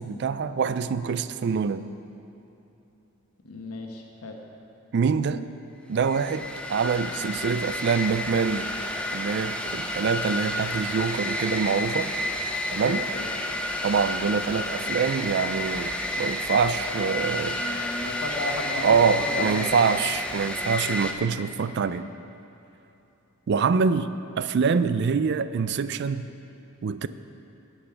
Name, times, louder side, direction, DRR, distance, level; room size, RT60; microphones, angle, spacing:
voice 1, 0.0-1.9 4.9-5.4 5.9-8.7 9.1-12.1 12.7-13.0 13.8-17.8 18.8-22.1 23.5-24.1 24.4-26.3 26.8-27.1, right 5 dB, 50° right, 13 dB, 0.3 m, -25 dB
voice 2, 3.4-4.4 12.7-13.4 17.0-19.8, left 2 dB, 85° left, 2 dB, 1.1 m, -34 dB
sound 1, 6.0-21.1, left 1 dB, 5° left, 0.5 m, -30 dB
16.5 x 5.5 x 5.7 m, 2.9 s
head